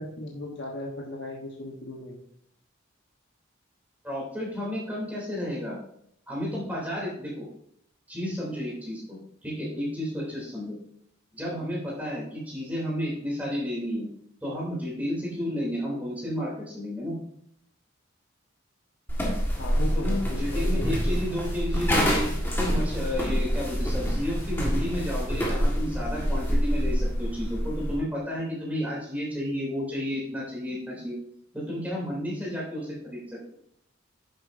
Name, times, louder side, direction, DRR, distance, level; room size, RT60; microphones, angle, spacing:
voice 1, 0.0-2.2 11.5-11.7 19.6-21.2, left 1 dB, 55° left, -1 dB, 1.2 m, -37 dB
voice 2, 4.0-5.8 6.3-7.5 8.1-10.8 11.3-14.1 14.4-17.2 20.0-22.2 22.6-31.2 31.5-33.5, equal, 10° right, -4 dB, 3.1 m, -32 dB
sound 1, 19.1-28.0, equal, 10° left, 1.6 m, -26 dB
9.7 x 7.6 x 2.7 m, 0.70 s
head